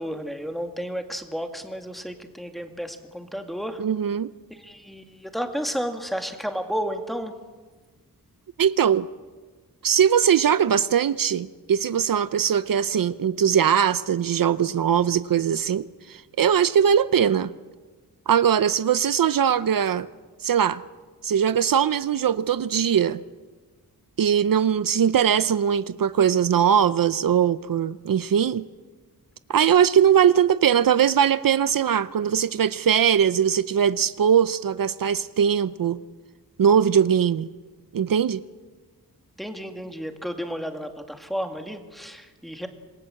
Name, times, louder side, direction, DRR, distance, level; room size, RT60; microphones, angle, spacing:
voice 1, 0.0-3.8 4.5-7.3 39.4-42.7, equal, ahead, 5 dB, 2.1 m, -32 dB
voice 2, 3.8-4.3 8.6-9.1 9.8-17.5 18.3-20.1 20.4-20.8 21.2-23.2 24.2-28.6 29.5-36.0 36.6-37.5 37.9-38.4, right 8 dB, 70° right, 15 dB, 0.7 m, -21 dB
27.0 x 21.0 x 7.7 m, 1.4 s
wide cardioid pair, 135°, 36 cm